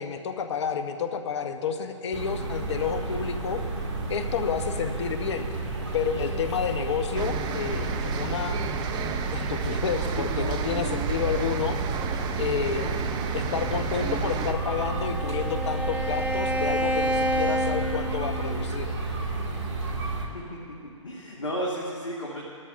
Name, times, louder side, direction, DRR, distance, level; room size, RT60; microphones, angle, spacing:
voice 1, 0.0-3.6 4.1-5.5 5.9-8.6 9.3-11.8 12.4-13.0 13.3-18.9, left 7 dB, 65° left, 7 dB, 1.1 m, -30 dB
sound 1, 2.1-20.3, right 2 dB, 65° right, 2.1 m, -31 dB
sound 2, 7.1-14.5, right 7 dB, 25° right, 0.7 m, -33 dB
Bowed string instrument, 14.2-18.7, equal, 10° right, 1.0 m, -29 dB
voice 2, 21.0-22.4, equal, 85° left, -4 dB, 1.8 m, -33 dB
19.5 x 13.0 x 2.6 m, 2.4 s
figure-of-eight pair, 115°, 16 cm